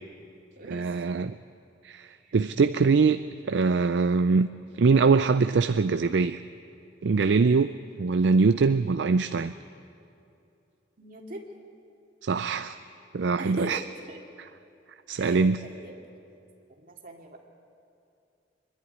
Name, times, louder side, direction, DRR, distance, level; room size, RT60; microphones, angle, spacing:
voice 1, 0.6-1.4 1.8-4.5 4.7-6.4 7.0-9.5 12.2-12.8 13.1-13.8 14.4-14.5 15.1-15.6, right 4 dB, 70° right, 11 dB, 0.4 m, -23 dB
voice 2, 11.0-11.4 13.4-13.7 14.1-14.2 15.2-15.9 16.8-17.4, right 1 dB, 50° right, 0 dB, 2.3 m, -40 dB
24.0 x 11.0 x 9.7 m, 2.6 s
head